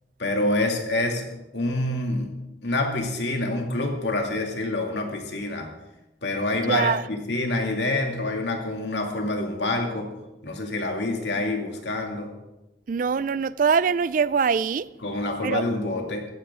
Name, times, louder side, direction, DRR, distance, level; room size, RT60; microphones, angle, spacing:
voice 1, 0.2-1.3 1.5-2.3 2.6-5.7 6.2-10.1 10.4-12.3 15.0-16.3, left 2 dB, 80° left, 2.4 m, -27 dB
voice 2, 6.7-7.0 12.9-14.9 15.4-15.6, right 6 dB, 50° right, 0.4 m, -23 dB
15.0 x 14.5 x 3.7 m
head